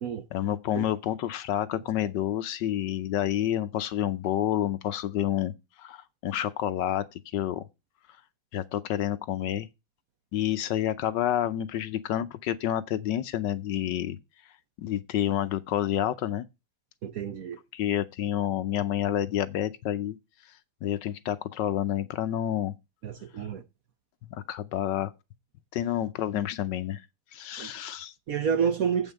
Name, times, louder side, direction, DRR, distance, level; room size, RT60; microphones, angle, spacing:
voice 1, 0.3-5.5 5.8-7.6 8.5-9.7 10.3-14.2 14.8-16.5 17.7-20.2 20.8-22.7 24.3-25.1 25.7-27.0 27.3-28.1, left 11 dB, 70° left, 1.2 m, -29 dB
voice 2, 17.0-17.6 23.0-23.6 27.6-27.7 28.3-29.1, right 7 dB, 60° right, 1.0 m, -29 dB
8.0 x 5.4 x 7.7 m
omnidirectional pair, 2.1 m